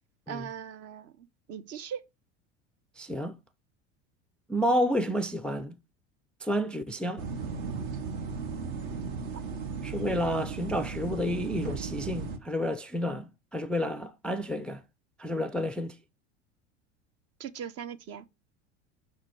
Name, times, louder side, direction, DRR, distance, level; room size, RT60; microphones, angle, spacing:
voice 1, 0.3-2.0 17.4-18.2, right 8 dB, 45° right, 0.7 m, -40 dB
voice 2, 3.0-3.4 4.5-5.8 6.4-7.3 9.8-14.8 15.2-16.0, equal, 5° left, 0.4 m, -30 dB
sound 1, 7.2-12.4, right 5 dB, 60° right, 1.2 m, -36 dB
5.2 x 4.1 x 4.7 m
hypercardioid pair, 75°, 35 cm